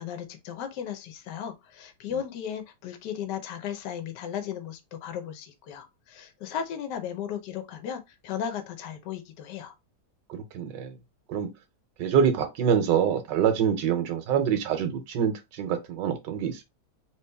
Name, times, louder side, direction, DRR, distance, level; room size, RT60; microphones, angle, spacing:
voice 1, 0.0-9.7, left 8 dB, 75° left, 1.3 m, -35 dB
voice 2, 10.3-11.0 11.3-11.5 12.0-16.6, right 8 dB, 80° right, 1.5 m, -25 dB
3.3 x 3.0 x 3.4 m
omnidirectional pair, 1.9 m